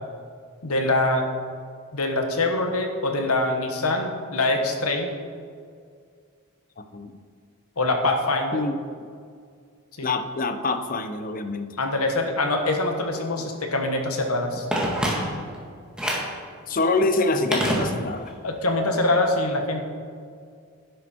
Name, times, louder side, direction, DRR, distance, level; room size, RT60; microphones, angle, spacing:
voice 1, 0.6-1.3 1.9-5.1 7.8-8.6 10.0-10.1 11.8-14.7 18.4-19.8, left 2 dB, 85° left, 4 dB, 1.6 m, -24 dB
voice 2, 10.0-11.7 16.7-18.3, left 3 dB, 40° left, 9 dB, 0.7 m, -25 dB
Telephone, 14.7-15.6 16.0-16.4 17.5-18.4 18.7-18.8, right 1 dB, 5° right, 1.7 m, -26 dB
11.5 x 10.5 x 4.5 m, 2.1 s
head